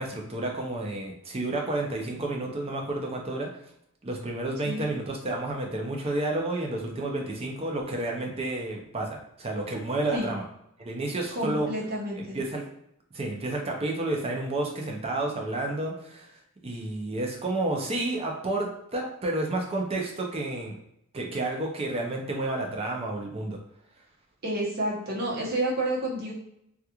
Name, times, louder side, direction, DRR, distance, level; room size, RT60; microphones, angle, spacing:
voice 1, 0.0-3.6 4.0-10.4 10.8-11.7 12.2-12.6 13.1-20.8 21.1-23.6, right 2 dB, 25° right, 1 dB, 0.4 m, -31 dB
voice 2, 11.3-12.4 24.4-26.3, right 1 dB, 45° right, -4 dB, 0.9 m, -29 dB
2.9 x 2.3 x 2.3 m, 0.76 s
head